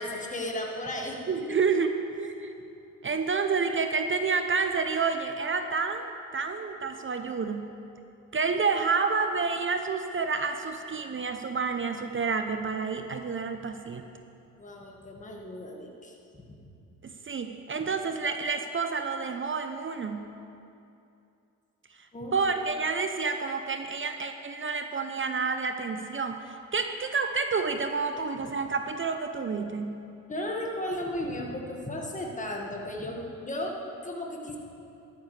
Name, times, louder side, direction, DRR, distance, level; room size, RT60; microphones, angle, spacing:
voice 1, 0.0-1.2 1.5-1.6 14.6-16.4 22.1-22.3 30.3-34.6, left 1 dB, 20° left, 0 dB, 1.9 m, -35 dB
voice 2, 1.3-2.5 3.0-7.7 8.3-14.0 17.0-20.3 22.0-30.0, right 5 dB, 30° right, 7 dB, 0.7 m, -29 dB
12.5 x 12.0 x 3.4 m, 2.7 s
hypercardioid pair, 55°, 40 cm